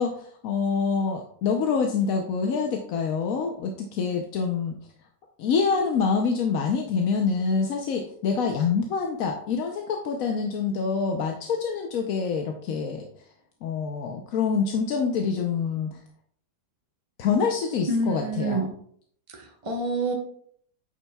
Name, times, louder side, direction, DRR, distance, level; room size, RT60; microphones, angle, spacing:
voice 1, 0.0-4.8 5.4-13.0 13.6-16.0 17.2-18.6, left 5 dB, 65° left, 2 dB, 1.0 m, -26 dB
voice 2, 17.9-18.7 19.3-20.1, right 2 dB, 25° right, 1 dB, 0.9 m, -27 dB
8.8 x 7.0 x 2.3 m, 0.62 s
omnidirectional pair, 1.8 m